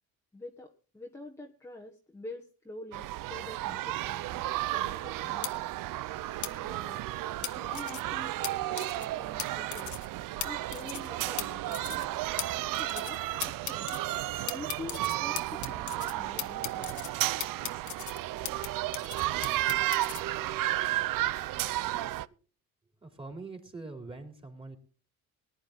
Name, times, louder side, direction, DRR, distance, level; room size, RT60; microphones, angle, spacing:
voice 1, 0.3-5.7 6.4-7.0 7.4-10.0 10.4-12.2 12.8-14.0 14.4-17.0, left 2 dB, 10° left, 0 dB, 1.5 m, -47 dB
sound 1, 2.9-22.3, right 16 dB, 65° right, 0.6 m, -33 dB
sound 2, 5.4-5.5 6.4-6.5 7.4-8.0 8.4-8.5 8.8-9.1 9.4-9.5 9.7-10.1 10.4-10.5 10.7-11.1 11.4-11.5 11.7-12.1 12.4-12.5 12.7-13.2 13.4-14.0 14.5-16.1 16.4-17.1 17.4-18.7 18.9-20.2, left 11 dB, 55° left, 1.4 m, -37 dB
voice 2, 23.0-24.8, right 3 dB, 15° right, 5 dB, 3.7 m, -44 dB
19.5 x 10.5 x 3.9 m, 0.37 s
cardioid pair, 120°, 35 cm